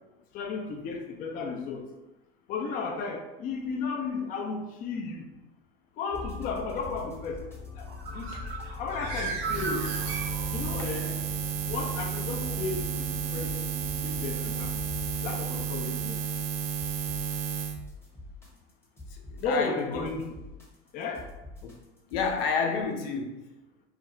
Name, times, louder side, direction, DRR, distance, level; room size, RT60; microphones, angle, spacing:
voice 1, 0.3-1.9 2.5-5.3 6.0-7.4 7.8-8.5 8.8-9.9 10.5-11.2 11.7-13.7 14.0-14.8 15.2-16.2 19.4-20.3 20.9-21.3, left 4 dB, 30° left, 2 dB, 0.4 m, -34 dB
sound 1, 6.1-22.5, left 3 dB, 10° left, 0.8 m, -42 dB
Bird, 7.8-10.9, right 4 dB, 70° right, 0.8 m, -36 dB
Buzz, 9.4-17.8, right 8 dB, 45° right, 0.4 m, -32 dB
voice 2, 19.1-20.1 21.6-21.7 22.1-23.4, left 5 dB, 75° left, 2 dB, 0.6 m, -30 dB
2.4 x 2.2 x 2.9 m, 0.99 s
hypercardioid pair, 95°, 30 cm